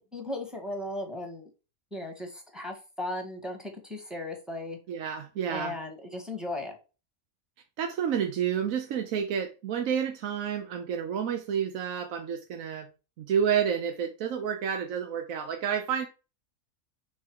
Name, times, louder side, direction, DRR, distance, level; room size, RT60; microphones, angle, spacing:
voice 1, 0.0-1.5 1.9-4.8 5.5-6.8, left 1 dB, ahead, 1.4 m, -36 dB
voice 2, 4.9-5.7 7.8-12.9 13.2-16.1, right 8 dB, 75° right, 1.1 m, -30 dB
5.5 x 3.8 x 4.6 m
omnidirectional pair, 1.5 m